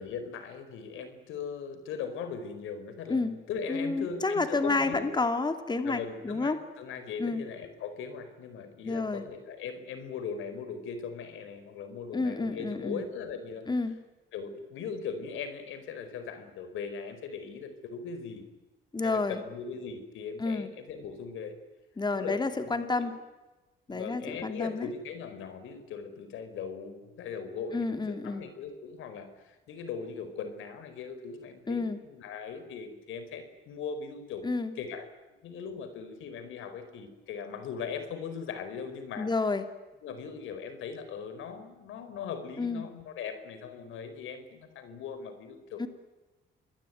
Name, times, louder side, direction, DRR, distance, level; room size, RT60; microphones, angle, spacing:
voice 1, 0.0-5.0 5.8-13.7 14.3-18.5 19.0-21.6 22.1-22.4 22.6-22.8 23.9-34.5 34.8-35.0 35.4-39.3 40.0-45.9, left 6 dB, 85° left, 10 dB, 4.7 m, -39 dB
voice 2, 3.7-6.6 7.2-7.4 8.8-9.2 12.1-13.0 13.7-14.0 18.9-19.4 20.4-20.7 22.0-23.2 23.9-24.9 27.7-28.4 31.7-32.0 34.4-34.7 39.2-39.7 42.6-42.8 45.8-45.9, left 3 dB, 20° left, 8 dB, 2.7 m, -30 dB
27.5 x 21.5 x 9.4 m, 1.1 s
cardioid pair, 90°, 20 cm